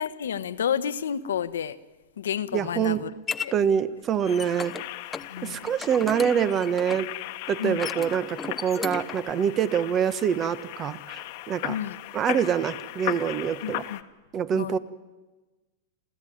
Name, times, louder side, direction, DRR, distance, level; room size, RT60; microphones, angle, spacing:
voice 1, 0.0-1.8 2.2-3.1 3.4-3.5 5.3-5.7 7.6-7.8 11.7-12.0 13.6-14.0 14.5-14.8, left 8 dB, 90° left, 14 dB, 1.1 m, -30 dB
sound 1, 2.4-3.5 4.0-4.8 5.1-5.3 5.7-7.1 7.7-9.3, left 5 dB, 15° left, 0.9 m, -36 dB
voice 2, 2.5-3.0 3.5-4.7 5.4-7.1 7.5-11.8 12.1-13.8 14.3-14.8, right 8 dB, 30° right, 16 dB, 1.2 m, -25 dB
sound 2, 4.2-14.0, left 18 dB, 55° left, 1.2 m, -37 dB
28.0 x 14.0 x 9.4 m, 1.2 s
hypercardioid pair, 130°, 0 cm